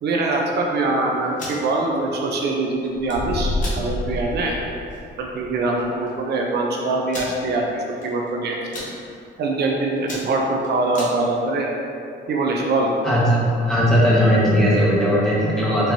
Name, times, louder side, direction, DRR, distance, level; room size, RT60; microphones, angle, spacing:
voice 1, 0.0-4.6 5.2-8.6 9.4-11.7 12.3-12.9, right 2 dB, 60° right, -1 dB, 0.5 m, -23 dB
sound 1, 1.2-1.6 2.8-3.2 3.6-3.8 4.3-4.4 4.8-5.0 5.8-5.9 6.1-6.2 7.1-7.4 8.0-8.3 8.6-8.9 9.5-9.7 10.0-11.1, left 1 dB, 40° left, 1.1 m, -34 dB
sound 2, 3.1-5.4, left 2 dB, 70° left, 0.6 m, -27 dB
voice 2, 13.0-15.9, equal, 5° left, -7 dB, 0.9 m, -18 dB
4.5 x 2.9 x 3.9 m, 2.6 s
cardioid pair, 140°, 19 cm